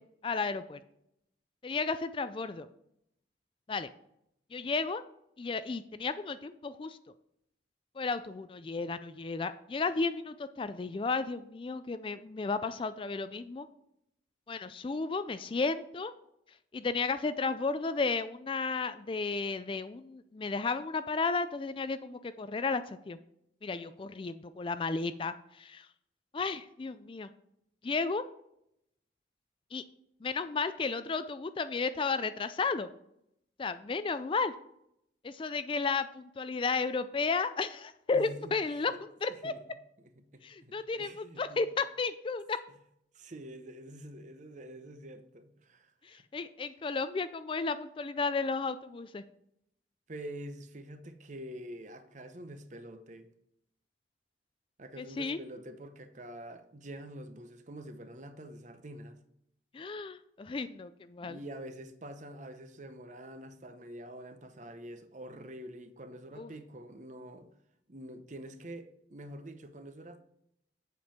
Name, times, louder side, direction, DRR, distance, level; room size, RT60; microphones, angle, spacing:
voice 1, 0.2-0.8 1.6-2.7 3.7-3.9 4.5-5.0 5.4-7.0 8.0-13.7 14.5-16.1 16.7-23.2 23.6-25.9 26.3-27.3 27.8-28.2 29.7-29.8 30.2-32.9 33.6-34.5 35.2-39.5 40.4-42.6 46.0-49.2 55.0-55.4 59.7-61.4 66.4-66.5, left 4 dB, 30° left, 0.3 m, -33 dB
voice 2, 38.1-39.0 39.3-39.6 40.0-41.6 43.1-46.2 50.1-53.3 54.8-59.2 61.2-67.5 67.9-70.2, right 1 dB, 40° right, 0.8 m, -46 dB
7.9 x 5.2 x 5.7 m
head